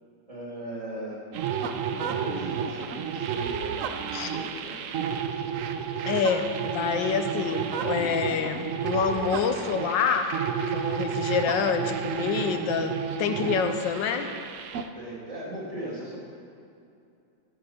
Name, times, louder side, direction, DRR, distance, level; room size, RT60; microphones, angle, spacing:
voice 1, 0.3-1.2 2.0-4.8 14.9-16.2, right 1 dB, 20° right, -5 dB, 2.3 m, -38 dB
sound 1, 1.3-14.9, right 7 dB, 80° right, 0.7 m, -31 dB
voice 2, 6.1-10.3 10.7-14.3, left 7 dB, 80° left, 7 dB, 1.3 m, -27 dB
15.0 x 7.7 x 4.2 m, 2.6 s
omnidirectional pair, 2.0 m